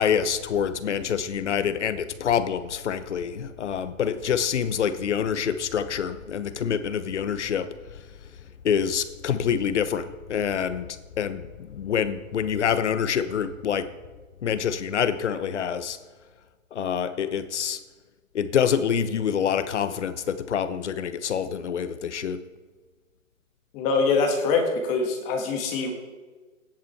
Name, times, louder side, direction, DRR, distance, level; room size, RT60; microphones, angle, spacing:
voice 1, 0.0-7.7 8.6-10.8 11.2-13.9 14.4-16.0 16.7-17.8 18.3-22.4, left 8 dB, 60° left, 1.0 m, -26 dB
voice 2, 23.7-25.9, left 4 dB, 20° left, 1.6 m, -24 dB
15.5 x 10.5 x 4.4 m
hypercardioid pair, 160°, 40 cm